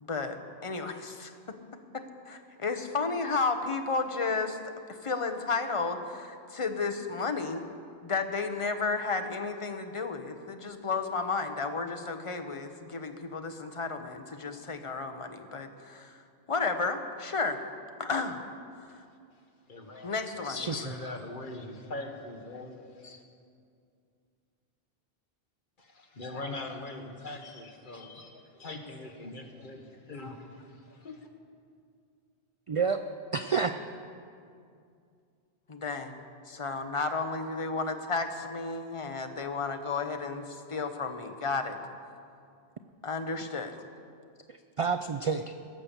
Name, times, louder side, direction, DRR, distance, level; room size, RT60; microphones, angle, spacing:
voice 1, 0.0-1.6 1.9-7.6 8.0-16.2 16.5-17.6 18.0-18.4 18.8-18.9 20.0-20.6 35.7-36.1 36.5-41.8 43.0-43.8, left 4 dB, 35° left, 7 dB, 0.8 m, -33 dB
voice 2, 19.7-20.1 20.6-23.2 25.8-31.2, left 2 dB, 50° left, 3 dB, 1.3 m, -42 dB
voice 3, 20.4-20.9 32.7-33.0 33.3-33.8 44.5-45.5, right 5 dB, 60° right, 8 dB, 0.3 m, -29 dB
17.0 x 6.8 x 7.3 m, 2.4 s
omnidirectional pair, 1.1 m